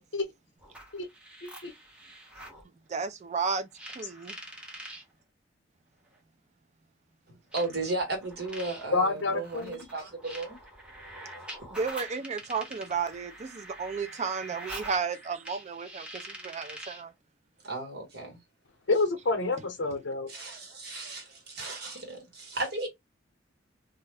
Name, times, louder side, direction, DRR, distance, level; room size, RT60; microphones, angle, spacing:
sound 1, 0.6-2.6 3.7-5.0 6.1-6.2 7.5-17.1, right 1 dB, 5° right, 0.7 m, -45 dB
voice 1, 1.4-1.7 8.9-9.9 18.9-20.3, left 3 dB, 65° left, 0.7 m, -28 dB
voice 2, 2.9-3.7 4.0-4.4 11.7-17.1, right 5 dB, 35° right, 0.4 m, -33 dB
voice 3, 7.3-10.6 17.6-18.4 20.3-22.9, right 2 dB, 60° right, 1.2 m, -35 dB
2.3 x 2.1 x 3.2 m
head